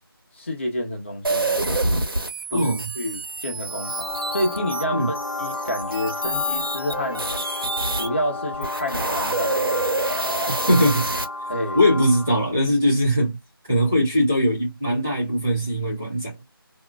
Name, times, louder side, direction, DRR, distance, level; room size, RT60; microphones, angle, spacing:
voice 1, 0.3-1.7 2.5-2.7 3.0-7.3 8.0-9.8 11.5-11.8, equal, 30° left, 1.1 m, -29 dB
sound 1, 1.2-8.1 8.5-11.2, right 2 dB, 65° right, 1.0 m, -27 dB
voice 2, 2.5-2.8 4.9-5.1 10.7-11.1 11.7-13.4 13.7-16.4, equal, 10° right, 0.7 m, -20 dB
sound 2, 3.6-12.5, left 2 dB, 75° left, 0.6 m, -32 dB
2.9 x 2.4 x 2.3 m
figure-of-eight pair, 175°, 13 cm